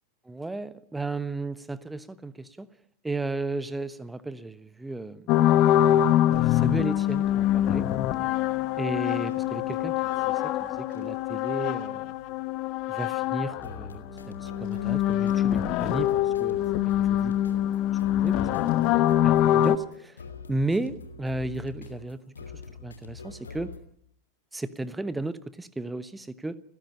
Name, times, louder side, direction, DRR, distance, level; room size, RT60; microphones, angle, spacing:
voice 1, 0.2-2.7 3.0-5.3 5.5-5.8 6.1-7.9 8.8-12.1 12.9-17.8 18.0-18.7 19.2-20.2 20.5-22.2 22.8-23.7 24.5-26.6, right 2 dB, 5° right, 16 dB, 1.1 m, -34 dB
sound 1, 5.3-13.9 14.2-19.8, left 12 dB, 40° left, 1.0 m, -24 dB
sound 2, 5.5-23.8, left 4 dB, 70° left, 3.0 m, -45 dB
30.0 x 16.0 x 5.6 m, 0.66 s
figure-of-eight pair, 90°, 0 cm